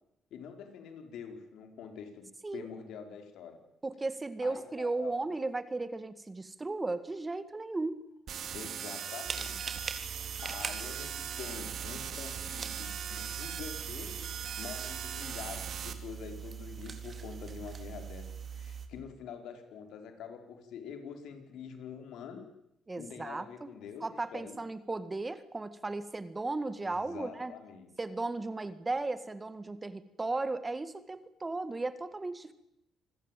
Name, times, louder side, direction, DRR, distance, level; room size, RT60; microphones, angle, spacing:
voice 1, 0.3-2.3 2.5-3.6 4.4-5.2 8.5-9.8 10.4-14.3 14.6-18.2 18.5-22.5 23.0-24.6 26.8-27.9, left 7 dB, 80° left, 6 dB, 4.7 m, -46 dB
voice 2, 3.8-8.0 22.9-23.7 24.0-27.5 28.0-32.5, right 2 dB, 20° right, 12 dB, 1.9 m, -35 dB
sound 1, 8.3-15.9, right 8 dB, 65° right, 2.8 m, -39 dB
sound 2, 9.2-18.9, right 6 dB, 45° right, 3.7 m, -43 dB
27.0 x 20.0 x 9.2 m, 0.81 s
cardioid pair, 90°, 0 cm